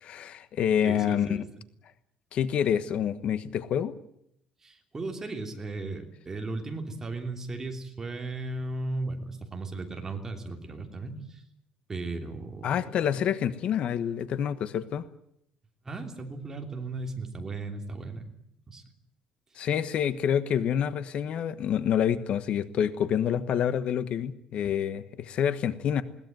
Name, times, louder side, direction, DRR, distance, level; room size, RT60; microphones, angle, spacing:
voice 1, 0.0-1.4 2.3-3.9 12.6-15.0 19.6-26.0, left 9 dB, 50° left, 13 dB, 1.2 m, -27 dB
voice 2, 0.8-1.4 4.6-11.4 11.9-13.0 15.8-18.3 18.7-18.8, right 2 dB, 20° right, 4 dB, 3.0 m, -36 dB
21.0 x 18.5 x 9.2 m, 0.74 s
cardioid pair, 150°, 2 cm